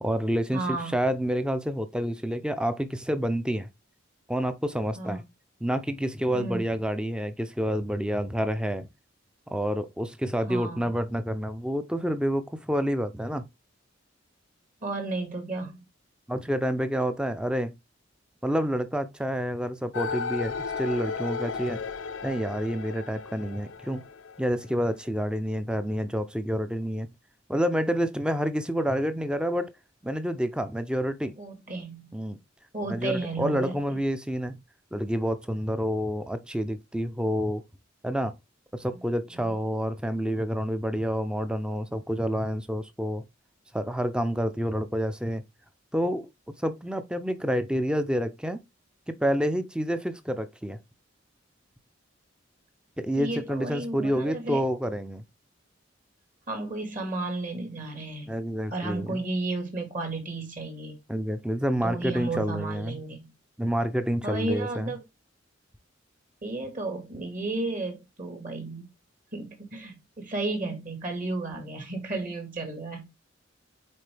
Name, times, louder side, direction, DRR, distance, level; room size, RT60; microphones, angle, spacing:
voice 1, 0.0-3.7 4.3-5.2 5.6-8.9 9.5-13.4 16.3-17.7 18.4-21.8 22.2-24.0 24.4-27.1 27.5-29.7 30.0-31.3 32.1-32.4 32.9-34.6 34.9-37.6 38.0-38.3 38.7-43.2 43.7-45.4 45.9-46.3 46.6-48.6 49.1-50.8 53.0-55.2 58.3-59.2 61.1-63.0 63.6-64.9, equal, 5° right, 0.5 m, -28 dB
voice 2, 0.5-1.0 5.0-5.2 6.3-6.7 10.5-10.8 14.8-15.8 31.3-32.1 32.7-33.7 53.2-54.6 56.5-58.3 58.7-61.0 61.8-63.3 64.2-65.0 66.4-68.9 69.3-73.2, right 2 dB, 40° right, 1.9 m, -33 dB
sound 1, 19.9-25.1, left 5 dB, 85° left, 0.6 m, -35 dB
8.5 x 3.8 x 3.4 m
head